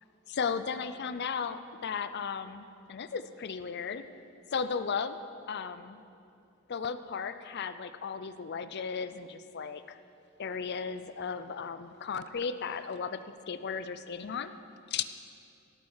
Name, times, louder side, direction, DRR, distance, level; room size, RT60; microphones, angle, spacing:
voice 1, 0.3-4.0 4.5-5.2 5.5-6.0 6.7-10.0 10.4-14.5 14.9-15.0, left 6 dB, 55° left, 12 dB, 0.5 m, -35 dB
17.5 x 8.6 x 4.8 m, 2.6 s
head